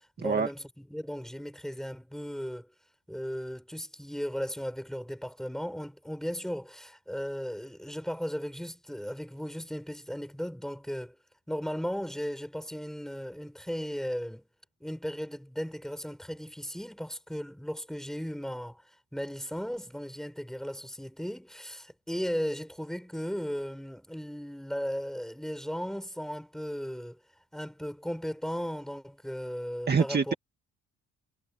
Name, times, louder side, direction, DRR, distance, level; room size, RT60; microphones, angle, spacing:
voice 1, 0.0-2.7 3.1-11.2 11.5-14.5 14.8-27.2 27.5-30.4, equal, ahead, 7.3 m, -36 dB
voice 2, 29.9-30.3, right 5 dB, 35° right, 1.9 m, -25 dB
cardioid pair, 90°, 30 cm